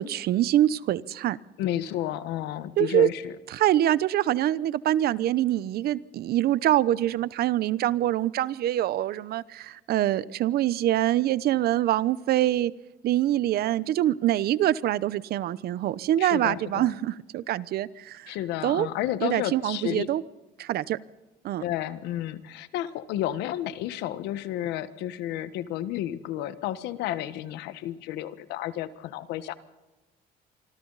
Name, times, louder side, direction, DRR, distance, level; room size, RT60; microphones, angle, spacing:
voice 1, 0.0-1.4 2.8-3.1 3.5-12.7 13.0-18.4 18.6-18.9 19.2-20.2 20.6-21.0 21.4-21.6, right 13 dB, 65° right, 18 dB, 0.9 m, -25 dB
voice 2, 1.6-3.3 16.2-16.9 18.3-20.1 21.6-29.5, left 12 dB, 90° left, 13 dB, 1.4 m, -31 dB
25.5 x 25.0 x 4.1 m, 1.1 s
cardioid pair, 110°, 17 cm